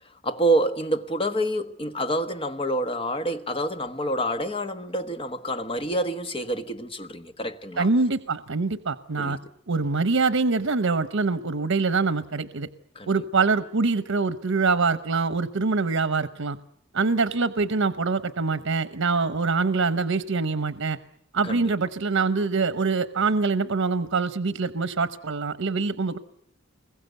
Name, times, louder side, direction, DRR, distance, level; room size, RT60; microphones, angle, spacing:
voice 1, 0.0-7.9 9.2-9.4 12.9-13.1 21.4-21.7, right 1 dB, 30° left, 1.3 m, -27 dB
voice 2, 7.8-9.4 9.7-12.7 13.1-16.6 16.9-21.0 21.3-26.2, right 4 dB, 85° right, 0.9 m, -24 dB
25.0 x 22.0 x 8.1 m
head